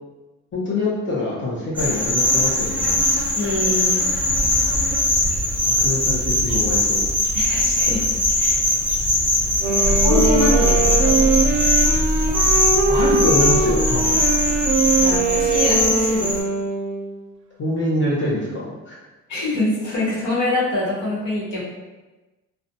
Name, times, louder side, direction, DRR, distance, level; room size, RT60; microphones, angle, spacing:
voice 1, 0.5-3.0 5.6-7.0 12.9-14.2 17.6-19.0, left 1 dB, 40° left, -5 dB, 0.7 m, -24 dB
sound 1, 1.8-16.4, left 1 dB, 5° right, 0.6 m, -21 dB
voice 2, 3.3-4.0 7.3-8.0 8.4-8.6 9.7-11.4 15.0-16.3 19.3-21.6, left 1 dB, 80° left, -6 dB, 1.1 m, -24 dB
Wind instrument woodwind instrument, 9.5-17.2, right 4 dB, 70° right, 0.5 m, -22 dB
sound 2, 9.8-15.7, equal, 20° left, 1.2 m, -24 dB
2.4 x 2.1 x 2.7 m, 1.1 s
cardioid pair, 90°, 30 cm